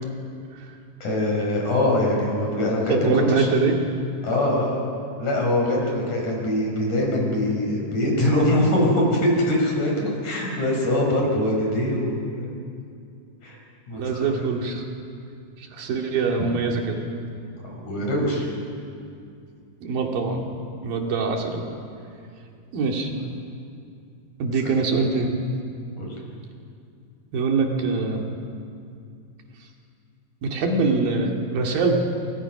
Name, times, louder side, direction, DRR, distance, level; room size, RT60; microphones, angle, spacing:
voice 1, 1.0-3.5 4.2-4.8 5.2-12.5 13.4-13.6 13.9-14.3 17.6-18.5 24.6-24.7 26.0-26.2, left 1 dB, 55° left, -1 dB, 6.8 m, -23 dB
voice 2, 2.9-3.8 14.0-14.8 15.6-17.0 19.8-20.4 20.8-21.6 22.7-23.1 24.4-25.4 27.3-28.2 30.4-32.0, right 4 dB, 85° right, 1 dB, 4.3 m, -23 dB
29.0 x 25.5 x 6.0 m, 2.4 s
omnidirectional pair, 4.0 m